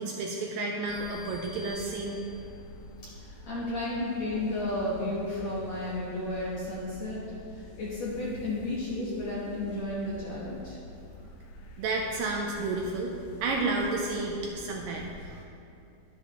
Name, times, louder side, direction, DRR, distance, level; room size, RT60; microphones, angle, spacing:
voice 1, 0.0-2.2 11.8-13.1 13.4-15.4, right 3 dB, 85° right, 0 dB, 2.1 m, -31 dB
sound 1, 0.9-15.3, left 1 dB, 85° left, 2.8 m, -47 dB
sound 2, 0.9-2.7, left 3 dB, 30° left, 1.8 m, -49 dB
voice 2, 3.2-10.8, left 1 dB, 65° left, -7 dB, 1.8 m, -33 dB
12.0 x 8.0 x 3.0 m, 2.7 s
omnidirectional pair, 4.5 m